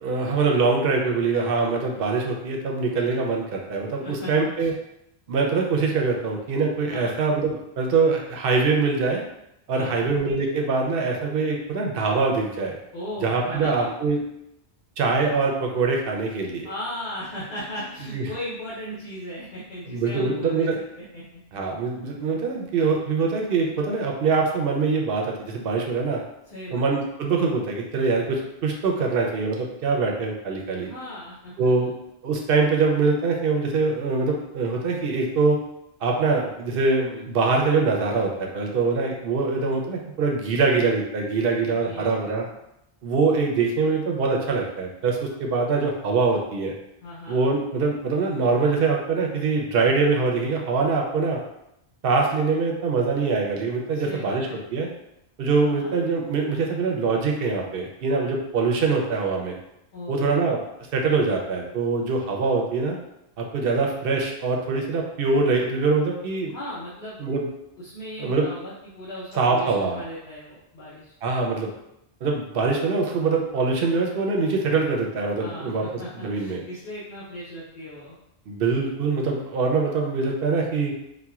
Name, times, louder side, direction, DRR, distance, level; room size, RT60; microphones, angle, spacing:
voice 1, 0.0-4.7 5.3-9.2 9.7-12.8 13.2-14.2 15.0-16.7 18.1-18.2 19.9-20.8 21.5-26.2 26.7-30.9 31.6-31.9 32.2-35.6 36.0-42.5 43.0-46.7 47.3-51.4 52.0-54.9 55.4-59.6 60.1-60.6 60.9-63.0 63.4-66.6 67.2-67.5 68.2-68.5 69.3-70.0 71.2-71.7 72.2-75.8 76.2-76.6 78.5-80.9, right 4 dB, 65° right, 1 dB, 0.8 m, -23 dB
voice 2, 4.0-4.7 6.9-7.1 9.7-10.1 12.9-13.9 16.6-21.4 26.4-26.9 30.7-31.9 41.7-42.1 47.0-47.4 53.9-54.6 55.6-55.9 59.9-60.4 66.5-67.2 67.8-71.1 75.4-78.2, equal, 50° left, -9 dB, 0.9 m, -37 dB
4.2 x 2.2 x 2.3 m, 0.82 s
omnidirectional pair, 1.1 m